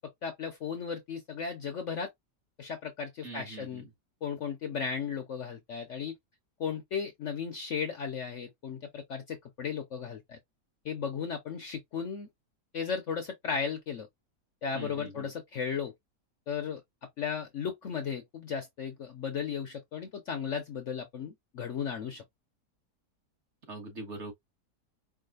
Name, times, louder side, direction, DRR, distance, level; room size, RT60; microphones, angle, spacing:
voice 1, 0.2-2.1 2.6-3.8 4.2-6.1 6.6-10.4 10.8-12.3 12.7-14.1 14.6-15.9 16.5-16.8 17.2-22.2, left 6 dB, 60° left, 0.9 m, -35 dB
voice 2, 3.2-3.9 14.7-15.3 23.7-24.3, right 3 dB, 45° right, 1.6 m, -42 dB
4.8 x 2.3 x 2.4 m
omnidirectional pair, 1.8 m